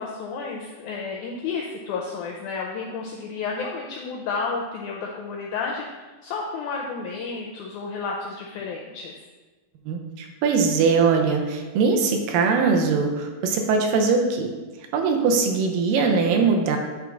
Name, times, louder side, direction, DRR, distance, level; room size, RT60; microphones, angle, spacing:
voice 1, 0.0-5.9 6.2-9.2, left 4 dB, 85° left, -1 dB, 1.7 m, -31 dB
voice 2, 9.9-14.5 14.9-16.8, right 4 dB, 75° right, 3 dB, 2.4 m, -21 dB
9.5 x 3.5 x 3.9 m, 1.3 s
omnidirectional pair, 4.1 m